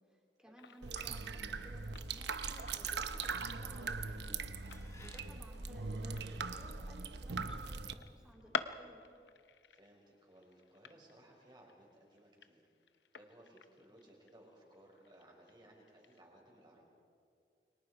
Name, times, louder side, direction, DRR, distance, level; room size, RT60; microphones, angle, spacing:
voice 1, 0.1-4.5 5.0-9.0, equal, 5° right, -1 dB, 3.5 m, -58 dB
sound 1, 0.6-16.2, left 6 dB, 80° left, 0.8 m, -50 dB
sound 2, 0.8-7.9, right 4 dB, 75° right, 0.9 m, -41 dB
sound 3, 1.8-6.9, left 2 dB, 20° left, 2.4 m, -64 dB
voice 2, 9.7-12.6 13.1-16.9, right 1 dB, 25° right, -1 dB, 5.5 m, -61 dB
29.5 x 23.5 x 4.9 m, 2.3 s
head